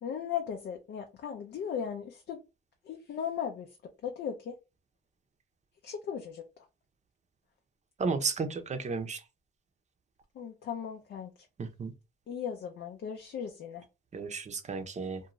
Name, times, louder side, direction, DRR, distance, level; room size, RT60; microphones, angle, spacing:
voice 1, 0.0-2.4 2.9-3.7 4.0-4.5 5.8-6.4 10.4-11.3 12.3-13.8, left 8 dB, 60° left, 0.5 m, -37 dB
voice 2, 8.0-9.2 11.6-11.9 14.1-15.2, right 4 dB, 35° right, 0.6 m, -33 dB
2.5 x 2.3 x 3.0 m
cardioid pair, 90°, 20 cm